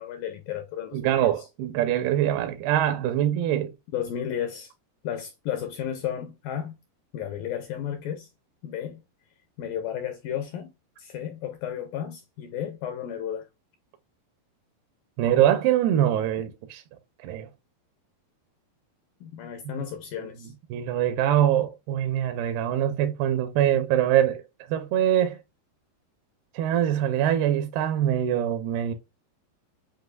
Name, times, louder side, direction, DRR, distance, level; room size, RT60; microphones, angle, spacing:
voice 1, 0.0-1.5 3.9-4.7 5.0-6.8 7.1-8.3 8.6-9.0 9.6-10.7 11.0-13.5 19.2-20.5, left 9 dB, 80° left, 2.1 m, -33 dB
voice 2, 0.9-3.7 15.2-16.8 17.2-17.5 20.7-24.4 24.7-25.4 26.5-28.9, right 11 dB, 80° right, 2.5 m, -23 dB
8.0 x 2.7 x 2.2 m
omnidirectional pair, 4.7 m